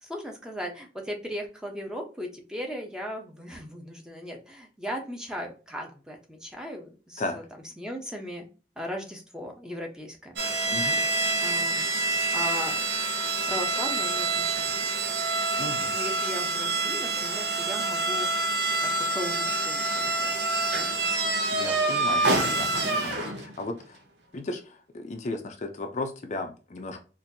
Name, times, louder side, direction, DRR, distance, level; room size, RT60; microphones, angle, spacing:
voice 1, 0.0-7.4 7.8-8.5 8.8-10.3 10.8-11.1 11.4-11.9 12.3-12.8 13.5-14.8 15.9-20.5, equal, 5° right, 2 dB, 0.7 m, -37 dB
sound 1, 10.4-23.6, right 3 dB, 85° right, 0.7 m, -27 dB
voice 2, 15.6-15.9 21.5-24.0 24.3-27.0, left 2 dB, 40° left, 5 dB, 0.5 m, -35 dB
4.2 x 2.6 x 2.6 m, 0.35 s
head